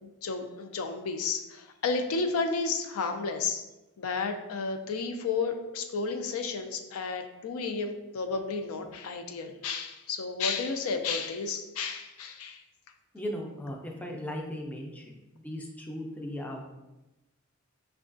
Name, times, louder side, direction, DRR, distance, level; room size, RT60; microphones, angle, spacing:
voice 1, 0.0-3.6 4.0-12.6, left 4 dB, 85° left, 6 dB, 0.4 m, -32 dB
voice 2, 13.1-16.6, equal, 5° left, 0 dB, 0.4 m, -37 dB
5.1 x 2.2 x 2.5 m, 1.0 s
head